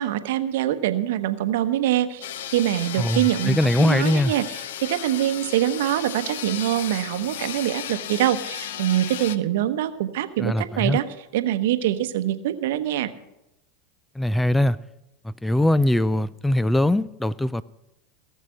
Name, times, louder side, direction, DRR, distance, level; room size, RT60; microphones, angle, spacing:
voice 1, 0.0-2.2 2.5-11.1 11.3-13.1, right 12 dB, 65° right, 11 dB, 0.9 m, -24 dB
sound 1, 2.2-9.4, left 10 dB, 70° left, 0.6 m, -34 dB
voice 2, 3.0-4.3 10.4-11.0 14.2-14.8 15.2-17.6, left 1 dB, 5° left, 19 dB, 0.4 m, -21 dB
18.0 x 7.4 x 6.4 m, 0.92 s
hypercardioid pair, 90°, 0 cm